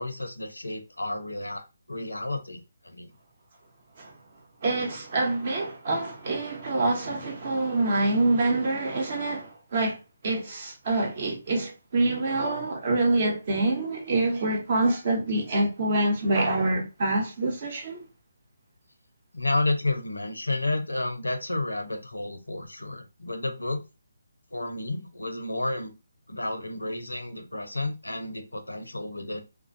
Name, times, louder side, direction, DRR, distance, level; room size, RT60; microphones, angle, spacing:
voice 1, 0.0-1.6 1.9-3.1 19.3-23.8 24.5-25.9 26.3-29.4, left 2 dB, 85° left, 0.5 m, -31 dB
voice 2, 4.6-10.0 10.2-18.0, right 2 dB, 45° right, 0.8 m, -26 dB
2.4 x 2.2 x 2.5 m
figure-of-eight pair, 145°, 0 cm